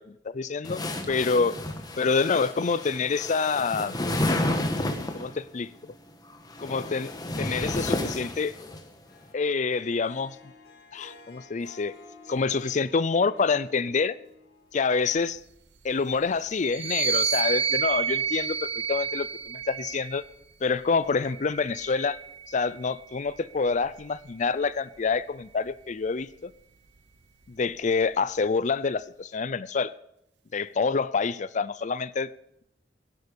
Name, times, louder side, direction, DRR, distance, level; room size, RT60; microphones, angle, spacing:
voice 1, 0.0-1.5 2.0-4.1 5.1-5.7 6.6-7.1 7.4-8.5 9.3-10.4 10.9-12.0 12.3-14.2 14.7-15.4 15.8-20.2 20.6-22.2 22.5-26.5 27.5-29.9 30.5-32.3, left 4 dB, 40° left, 0.5 m, -27 dB
sound 1, 0.6-5.3 6.3-8.8, left 1 dB, 20° left, 1.4 m, -31 dB
Harp, 9.1-15.3, left 3 dB, 60° left, 2.7 m, -52 dB
sound 2, 16.7-20.3 21.1-22.7, right 6 dB, 70° right, 1.0 m, -30 dB
16.5 x 11.0 x 5.2 m
head